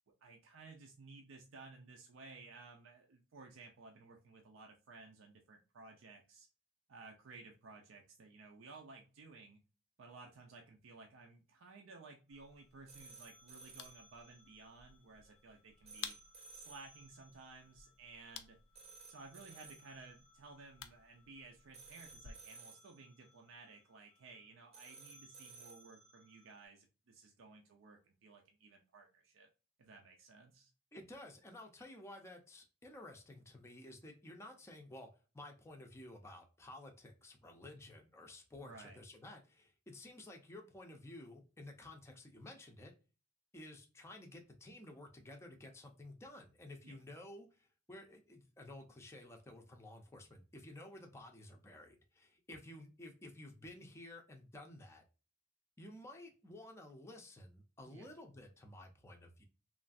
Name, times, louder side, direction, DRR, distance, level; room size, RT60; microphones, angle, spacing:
voice 1, 0.2-6.5 6.9-9.6 10.0-16.2 16.5-18.6 19.1-29.5 29.8-30.7 38.6-39.0 46.8-47.0 57.8-58.1, right 3 dB, 70° right, 2 dB, 0.5 m, -56 dB
sound 1, 12.3-22.3, left 8 dB, 80° left, 0.4 m, -55 dB
sound 2, 12.3-26.6, right 4 dB, 30° right, 0.7 m, -59 dB
voice 2, 30.9-35.1 35.3-42.9 43.5-55.0 55.8-59.4, left 1 dB, 15° left, 2 dB, 0.5 m, -53 dB
3.1 x 2.4 x 2.5 m, 0.32 s
head